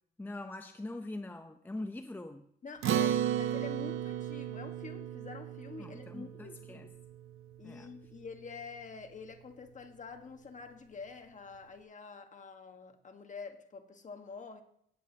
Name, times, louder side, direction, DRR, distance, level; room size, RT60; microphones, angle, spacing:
voice 1, 0.2-2.5 5.8-6.9 7.6-7.9, left 2 dB, 10° left, 7 dB, 0.6 m, -43 dB
voice 2, 2.6-6.9 7.6-14.6, left 4 dB, 40° left, 6 dB, 1.5 m, -47 dB
Acoustic guitar, 2.8-7.5, right 10 dB, 85° right, 0.7 m, -34 dB
17.0 x 8.1 x 2.9 m, 0.69 s
cardioid pair, 90°, 20 cm